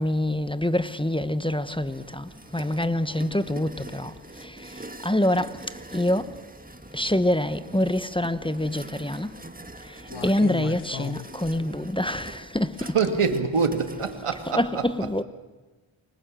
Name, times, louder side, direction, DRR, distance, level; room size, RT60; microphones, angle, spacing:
voice 1, 0.0-4.1 4.4-4.7 5.0-5.6 5.9-6.3 6.9-9.3 10.2-13.2 14.5-15.2, left 1 dB, 10° left, 1.1 m, -26 dB
sound 1, 1.9-14.5, right 2 dB, 15° right, 1.8 m, -44 dB
sound 2, 8.3-8.7 10.1-11.8 13.0-13.1 13.9-14.1, left 9 dB, 75° left, 1.1 m, -37 dB
voice 2, 12.8-15.2, right 5 dB, 90° right, 2.5 m, -26 dB
28.5 x 25.0 x 7.7 m
cardioid pair, 55°, 50 cm